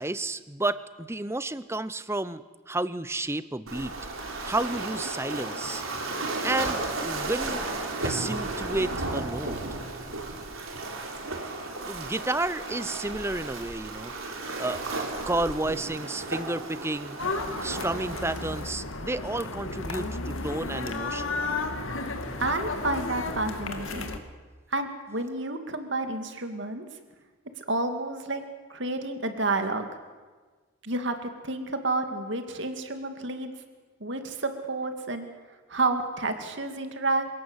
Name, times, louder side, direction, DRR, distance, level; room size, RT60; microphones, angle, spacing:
voice 1, 0.0-3.9 4.4-5.8 6.4-7.7 8.0-9.6 11.9-14.1 14.6-14.8 15.3-17.2 17.6-21.4, right 2 dB, 15° right, 15 dB, 0.7 m, -31 dB
Waves surf, 3.7-18.6, right 2 dB, 80° right, 4.2 m, -34 dB
sound 1, 17.2-24.2, left 3 dB, 75° left, 2.1 m, -33 dB
voice 2, 22.4-24.2 24.7-26.9 27.6-28.4 28.7-29.9 30.8-33.5 34.0-35.3 35.7-37.3, right 2 dB, 60° right, 7 dB, 2.4 m, -30 dB
27.0 x 17.5 x 8.2 m, 1.4 s
head